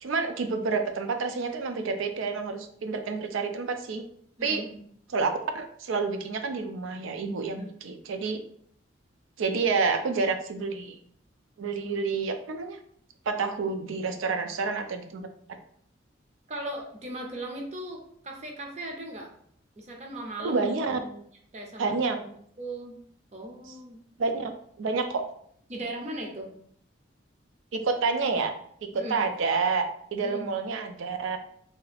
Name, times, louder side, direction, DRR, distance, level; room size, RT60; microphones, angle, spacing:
voice 1, 0.0-4.1 4.4-4.6 5.1-8.4 9.4-11.0 11.6-12.8 13.3-15.6 20.4-21.0 21.8-22.2 24.2-24.5 24.8-25.2 27.7-28.5 28.8-31.4, right 4 dB, 85° right, 7 dB, 0.4 m, -29 dB
voice 2, 4.4-4.9 7.5-7.8 16.5-19.3 19.8-20.7 21.0-21.2 21.5-21.9 22.2-22.3 22.6-23.0 23.3-24.0 25.7-26.5 28.9-29.3 30.1-30.6, right 1 dB, 35° right, 1 dB, 0.5 m, -38 dB
2.8 x 2.4 x 3.3 m, 0.63 s
head